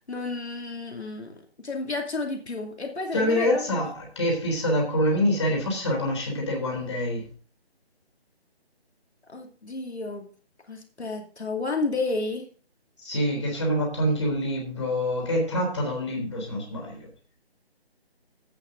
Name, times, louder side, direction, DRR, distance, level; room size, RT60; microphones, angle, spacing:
voice 1, 0.1-3.8 9.3-10.3 10.7-12.5, left 3 dB, 80° left, 3 dB, 2.7 m, -31 dB
voice 2, 3.1-7.3 13.0-17.1, equal, 25° left, 0 dB, 3.7 m, -26 dB
16.5 x 6.0 x 3.8 m, 0.41 s
figure-of-eight pair, 175°, 32 cm